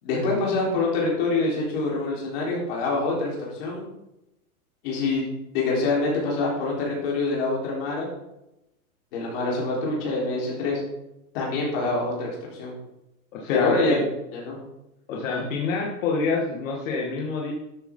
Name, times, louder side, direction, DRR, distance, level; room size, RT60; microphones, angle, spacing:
voice 1, 0.0-3.8 4.8-5.2 5.5-8.1 9.1-10.8 11.3-12.7 13.5-14.0 14.3-14.6 15.3-15.4, left 3 dB, 40° left, -3 dB, 4.0 m, -25 dB
voice 2, 13.3-14.0 15.1-17.5, left 4 dB, 60° left, -1 dB, 1.9 m, -27 dB
12.0 x 7.9 x 3.8 m, 0.91 s
supercardioid pair, 170°, 44 cm